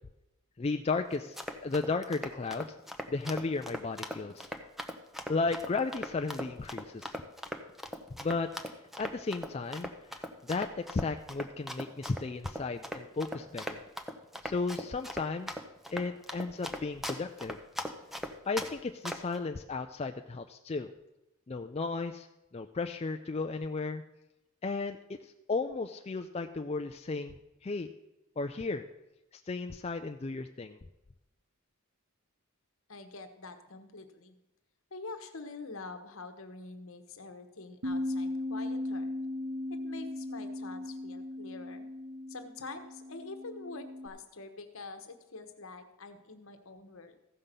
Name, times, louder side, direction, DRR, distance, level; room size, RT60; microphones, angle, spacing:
voice 1, 0.6-1.4 1.6-2.8 3.1-4.5 5.3-7.1 8.2-8.5 9.0-13.8 14.4-15.6 15.9-17.6 18.5-20.9 21.5-22.3 22.5-24.0 24.6-27.3 27.6-27.9 28.4-28.9 29.3-30.8, left 3 dB, 30° left, 5 dB, 0.4 m, -34 dB
Run, 1.1-18.7 19.1-19.4, equal, ahead, 0.7 m, -39 dB
voice 2, 32.9-34.3 34.9-39.1 39.8-41.8 42.3-47.1, left 3 dB, 65° left, 7 dB, 1.2 m, -46 dB
Bass guitar, 37.8-44.1, left 1 dB, 85° right, 1.6 m, -37 dB
14.5 x 5.7 x 6.7 m, 0.95 s
head